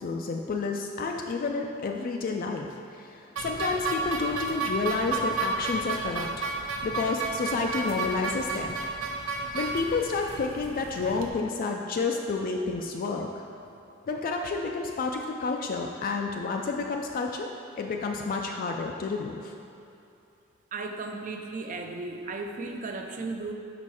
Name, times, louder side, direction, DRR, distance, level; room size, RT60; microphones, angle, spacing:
voice 1, 0.0-2.7 2.9-6.3 6.8-8.7 9.3-13.3 14.1-17.5 17.8-19.5, left 4 dB, 45° left, 2 dB, 0.3 m, -30 dB
sound 1, 3.4-11.3, right 4 dB, 90° right, 0.6 m, -32 dB
voice 2, 20.7-23.5, right 3 dB, 40° right, 4 dB, 0.4 m, -35 dB
5.4 x 4.2 x 4.7 m, 2.7 s
head